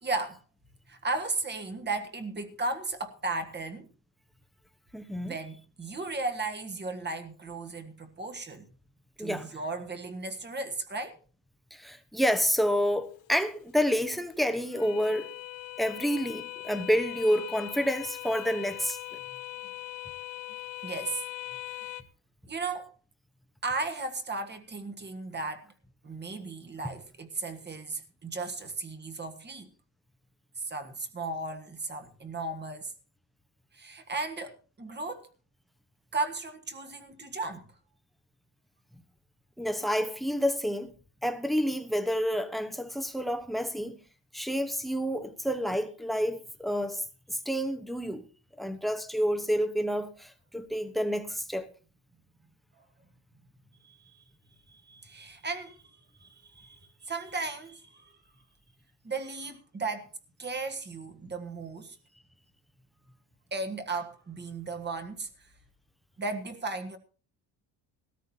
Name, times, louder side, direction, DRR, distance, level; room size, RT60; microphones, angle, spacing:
voice 1, 0.0-0.4 0.9-3.9 5.2-8.7 9.2-11.2 20.8-21.2 21.7-22.0 22.5-22.9 23.6-25.7 26.0-29.7 30.6-32.9 33.7-35.3 36.1-37.7 53.8-54.2 54.7-55.8 56.2-58.1 59.0-60.1 60.4-62.0 63.5-65.5 66.2-67.0, right 3 dB, 25° right, 1.6 m, -35 dB
voice 2, 4.9-5.4 9.2-9.5 11.7-15.3 15.8-19.0 39.6-40.9 41.2-44.0 44.3-47.0 47.3-48.2 48.6-51.7, equal, ahead, 1.0 m, -29 dB
sound 1, 13.0-22.0, left 17 dB, 80° left, 0.8 m, -41 dB
19.0 x 13.5 x 2.8 m
cardioid pair, 125°, 43 cm